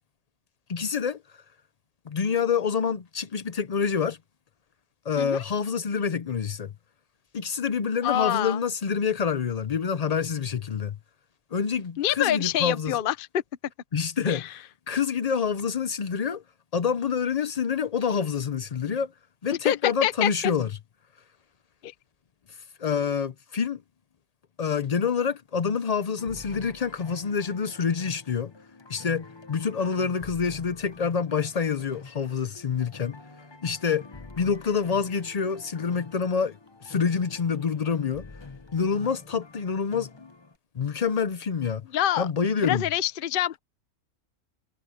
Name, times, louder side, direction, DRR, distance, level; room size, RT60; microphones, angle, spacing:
voice 1, 0.7-1.2 2.1-4.2 5.1-6.7 7.3-11.0 11.5-13.0 13.9-16.4 16.7-19.1 19.4-20.7 22.8-23.8 24.6-28.5 28.9-33.2 33.6-34.1 34.4-36.6 36.8-38.3 38.7-40.1 40.7-41.8 42.2-42.8, left 6 dB, 75° left, 0.3 m, -27 dB
voice 2, 8.0-8.6 12.0-13.4 14.3-14.5 19.6-20.3 21.8-21.9 41.9-42.3 42.6-43.6, left 11 dB, 50° left, 0.7 m, -26 dB
sound 1, 26.2-40.6, left 3 dB, 20° left, 1.0 m, -46 dB
omnidirectional pair, 1.6 m